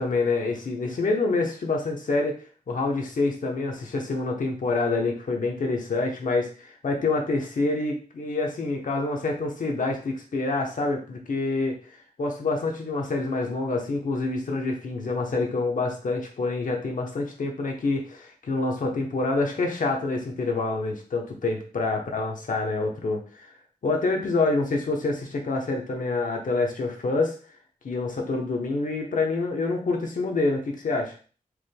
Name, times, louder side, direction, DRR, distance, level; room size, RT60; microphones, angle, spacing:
voice 1, 0.0-2.4 2.7-11.8 12.2-23.5 23.8-27.4 27.8-31.1, left 3 dB, 80° left, 1 dB, 0.9 m, -27 dB
4.7 x 3.5 x 2.2 m, 0.39 s
wide cardioid pair, 100°, 14 cm